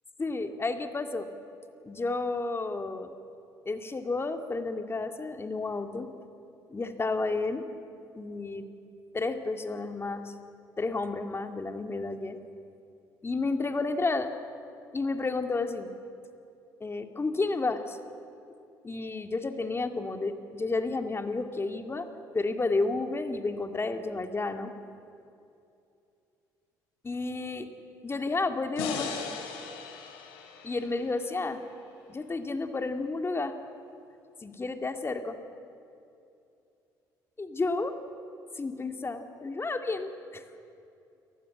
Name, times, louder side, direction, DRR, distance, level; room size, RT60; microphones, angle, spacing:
voice 1, 0.2-1.3 1.8-3.1 3.7-6.1 6.7-7.7 8.1-8.7 9.1-10.3 10.8-12.4 13.2-14.3 14.9-15.9 16.8-18.0 18.8-22.1 22.3-24.7 27.0-27.7 28.0-29.1 30.6-31.6 32.1-33.6 34.4-35.4 37.4-38.0 38.6-40.4, left 3 dB, 25° left, 7 dB, 2.4 m, -31 dB
sound 1, 28.8-32.0, left 6 dB, 85° left, 3.4 m, -39 dB
29.0 x 19.0 x 7.8 m, 2.6 s
hypercardioid pair, 60°, 9 cm